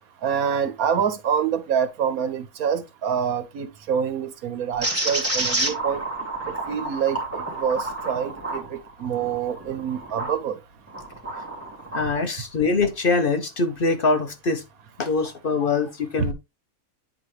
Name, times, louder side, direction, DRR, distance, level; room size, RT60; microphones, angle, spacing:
voice 1, 0.2-6.0 6.7-10.6 16.2-16.3, right 7 dB, 85° right, 1.4 m, -26 dB
sound 1, 4.8-10.4 10.9-12.1, right 2 dB, 10° right, 2.4 m, -29 dB
voice 2, 11.9-14.6 15.0-16.3, left 4 dB, 45° left, 0.8 m, -23 dB
9.0 x 4.3 x 3.2 m
omnidirectional pair, 1.5 m